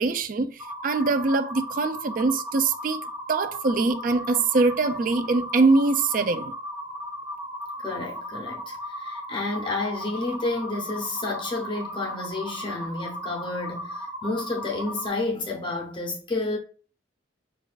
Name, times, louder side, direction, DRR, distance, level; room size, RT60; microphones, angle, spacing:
voice 1, 0.0-3.0 3.3-6.5, right 3 dB, 45° right, 0.4 m, -23 dB
sound 1, 0.6-15.1, equal, 20° right, 1.9 m, -36 dB
voice 2, 7.8-16.6, left 2 dB, 25° left, 0.7 m, -30 dB
6.1 x 2.4 x 2.4 m
head